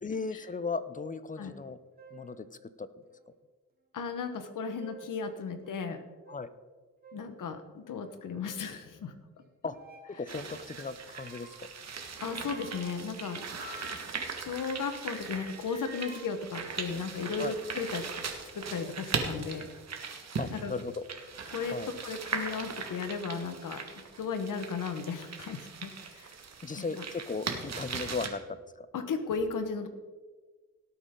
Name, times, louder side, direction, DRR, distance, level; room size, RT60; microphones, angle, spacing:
voice 1, 0.0-1.8 2.1-2.9 6.3-6.5 9.6-9.8 10.2-11.6 17.4-17.5 20.4-21.0 21.7-21.9 26.6-28.9, left 4 dB, 25° left, 14 dB, 0.6 m, -36 dB
sound 1, 1.5-1.7 2.0-2.4 3.1-3.2 4.5-5.2 5.6-5.8 6.2-6.4 7.0-7.3 8.0-8.7 9.7-10.2 11.1-11.7 12.3-14.8 15.0-17.4, right 1 dB, 30° right, 2.7 m, -51 dB
voice 2, 3.9-6.0 7.1-9.1 12.2-13.6 13.9-18.0 18.5-19.7 20.5-20.7 21.5-23.8 24.2-26.3 26.8-26.9 28.9-29.9, left 5 dB, 70° left, 8 dB, 1.3 m, -35 dB
sound 2, 10.3-28.3, right 5 dB, 50° right, 1.7 m, -39 dB
18.0 x 8.3 x 3.8 m, 1.4 s
cardioid pair, 95°, 33 cm